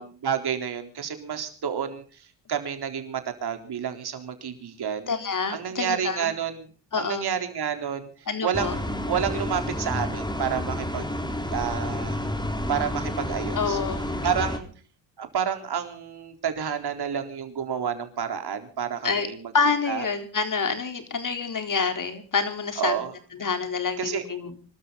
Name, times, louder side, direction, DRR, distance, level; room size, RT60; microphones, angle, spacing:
voice 1, 0.0-5.1 5.5-6.7 7.0-11.2 11.5-12.3 12.7-13.8 14.2-14.7 15.2-19.5 19.9-20.1 22.8-23.1 24.0-24.2, right 8 dB, 60° right, 6 dB, 3.9 m, -30 dB
voice 2, 5.1-6.3 6.9-7.3 8.3-8.7 13.5-14.3 19.0-19.3 19.5-23.0 23.3-24.5, left 5 dB, 45° left, 7 dB, 3.9 m, -27 dB
sound 1, 8.5-14.6, left 1 dB, 10° left, 3.8 m, -30 dB
25.5 x 13.0 x 4.0 m, 0.41 s
supercardioid pair, 65°, 45 cm